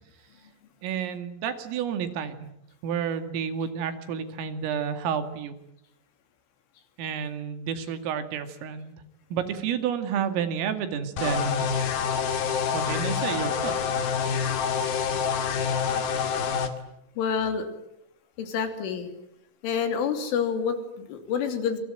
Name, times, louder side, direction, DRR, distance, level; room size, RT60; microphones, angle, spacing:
voice 1, 0.8-2.5 2.8-5.5 7.0-9.0 9.3-11.6 12.7-13.8, right 7 dB, 80° right, 9 dB, 4.9 m, -30 dB
sound 1, 11.2-16.7, left 6 dB, 55° left, 3.6 m, -27 dB
voice 2, 17.2-17.7 18.4-19.1 19.6-21.8, left 6 dB, 70° left, 7 dB, 5.4 m, -28 dB
27.0 x 24.5 x 9.0 m, 0.81 s
omnidirectional pair, 5.8 m